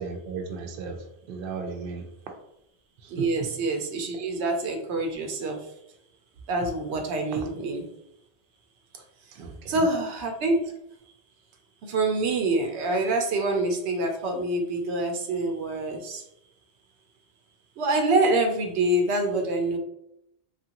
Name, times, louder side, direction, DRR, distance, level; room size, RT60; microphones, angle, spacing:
voice 1, 0.0-2.0 3.0-3.3 9.3-9.9, right 5 dB, 60° right, 2 dB, 0.7 m, -36 dB
voice 2, 3.1-5.6 6.5-7.8 9.7-10.7 11.8-16.2 17.8-19.8, right 2 dB, 85° right, 4 dB, 0.9 m, -26 dB
3.1 x 2.5 x 2.8 m, 0.79 s
omnidirectional pair, 1.1 m